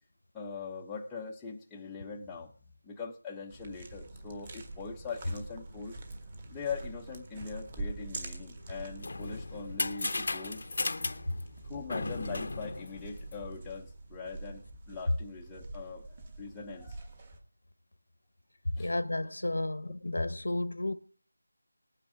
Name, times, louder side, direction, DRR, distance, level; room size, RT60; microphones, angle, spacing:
voice 1, 0.3-2.5 2.8-6.0 6.5-10.7 11.7-17.1 18.8-18.9, left 5 dB, 5° left, 0.6 m, -41 dB
sound 1, 3.5-17.4, right 2 dB, 20° right, 1.4 m, -45 dB
sound 2, 8.7-13.7, left 3 dB, 45° left, 0.7 m, -36 dB
voice 2, 18.8-20.9, left 2 dB, 85° left, 1.1 m, -32 dB
19.0 x 9.2 x 3.7 m
figure-of-eight pair, 175°, 0 cm